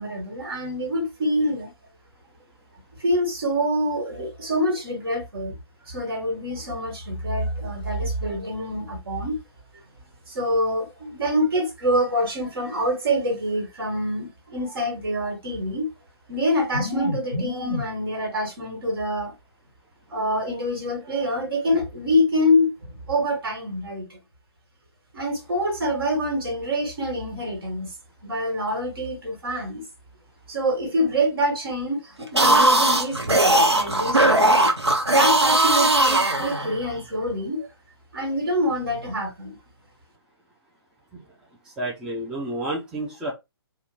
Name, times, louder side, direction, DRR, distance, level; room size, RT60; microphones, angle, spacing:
voice 1, 0.0-1.7 3.0-5.5 5.9-9.4 10.3-15.9 16.3-19.3 20.1-24.2 25.1-27.9 28.2-29.8 30.5-34.6 35.1-37.7 38.1-39.6, equal, 60° right, 1.6 m, -26 dB
sound 1, 32.2-37.0, right 1 dB, 85° right, 0.8 m, -19 dB
voice 2, 41.8-43.3, right 1 dB, 5° right, 0.4 m, -30 dB
2.8 x 2.2 x 3.4 m
figure-of-eight pair, 135°, 14 cm